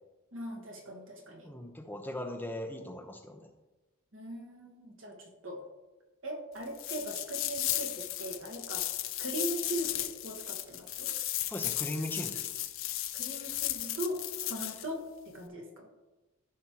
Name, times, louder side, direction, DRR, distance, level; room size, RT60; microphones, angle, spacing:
voice 1, 0.3-1.5 4.1-5.7 6.2-8.9 9.2-11.1 13.1-14.2 14.5-15.9, right 1 dB, 60° right, 1 dB, 1.7 m, -40 dB
voice 2, 1.4-3.5 11.5-12.5, left 1 dB, 10° left, 1 dB, 0.9 m, -39 dB
sound 1, 6.7-14.9, left 13 dB, 65° left, 0.5 m, -35 dB
14.5 x 5.4 x 3.0 m, 1.1 s
head